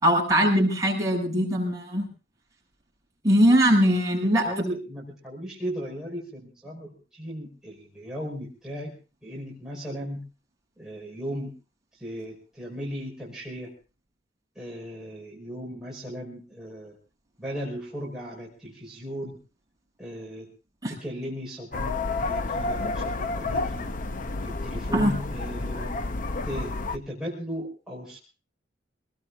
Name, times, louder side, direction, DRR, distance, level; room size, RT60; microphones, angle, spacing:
voice 1, 0.0-2.1 3.2-4.5 20.8-20.9 24.9-25.1, equal, 20° right, -1 dB, 7.4 m, -21 dB
voice 2, 4.4-9.0 9.2-10.2 10.8-11.5 11.9-13.7 14.6-17.0 17.4-19.4 20.0-20.5 20.9-21.9 22.2-23.9 24.4-26.0 26.4-28.2, equal, 5° right, -5 dB, 5.3 m, -36 dB
sound 1, 21.7-27.0, left 3 dB, 50° left, 0.7 m, -30 dB
26.5 x 20.0 x 2.4 m, 0.35 s
head